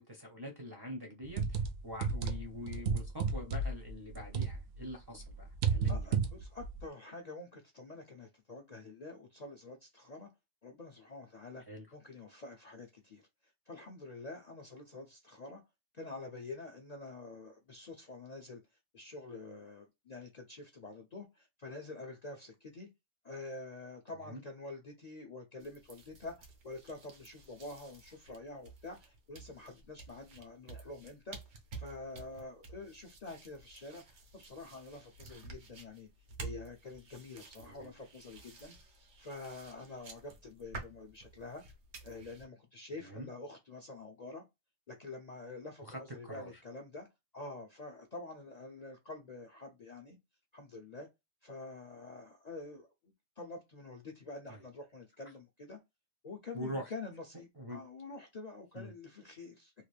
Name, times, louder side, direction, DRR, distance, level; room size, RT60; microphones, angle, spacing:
voice 1, 0.0-6.2 11.7-11.9 24.2-24.4 37.6-37.9 42.9-43.3 45.8-46.5 54.5-54.6 56.5-56.8 57.6-57.8 58.7-58.9, equal, 25° right, 0.6 m, -44 dB
sound 1, 1.2-4.9 5.2-6.8, right 5 dB, 65° right, 0.7 m, -33 dB
voice 2, 5.9-10.3 10.6-11.6 11.9-15.6 15.9-18.6 18.9-22.9 23.2-31.4 31.8-36.1 36.4-38.8 39.2-41.6 42.0-44.4 44.9-47.1 47.3-50.2 50.5-51.1 51.4-55.8 56.2-59.7, left 3 dB, 50° left, 0.5 m, -47 dB
sound 2, 25.6-42.5, right 4 dB, 80° right, 1.2 m, -51 dB
2.9 x 2.4 x 3.2 m
omnidirectional pair, 1.2 m